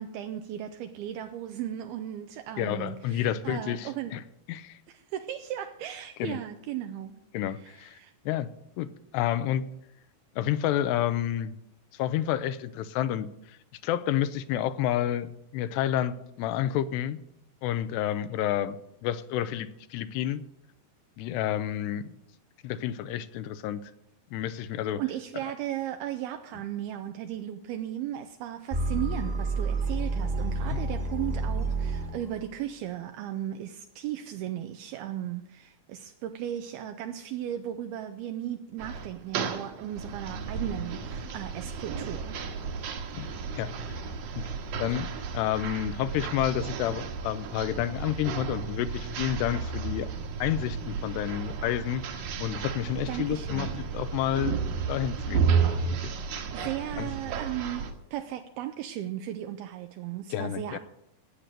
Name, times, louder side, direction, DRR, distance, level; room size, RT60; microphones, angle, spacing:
voice 1, 0.0-4.2 4.9-7.2 7.5-8.1 25.0-42.4 53.1-53.7 56.5-60.8, right 11 dB, 80° right, 2.4 m, -36 dB
voice 2, 2.6-4.2 4.5-4.8 6.2-6.4 7.3-8.0 8.3-8.5 8.8-9.6 10.4-11.6 11.9-13.6 13.8-17.2 17.6-20.4 21.2-22.1 22.6-23.9 24.3-25.0 43.1-43.3 43.6-43.7 44.4-44.5 44.8-45.1 45.3-50.1 50.4-54.6 54.9-55.4 55.9-56.1 56.6-56.7 57.0-57.1 60.3-60.8, left 11 dB, 80° left, 2.8 m, -30 dB
sound 1, 28.7-32.5, right 2 dB, 25° right, 1.2 m, -29 dB
sound 2, 38.8-57.9, right 5 dB, 65° right, 2.7 m, -33 dB
17.0 x 7.5 x 6.6 m
omnidirectional pair, 4.9 m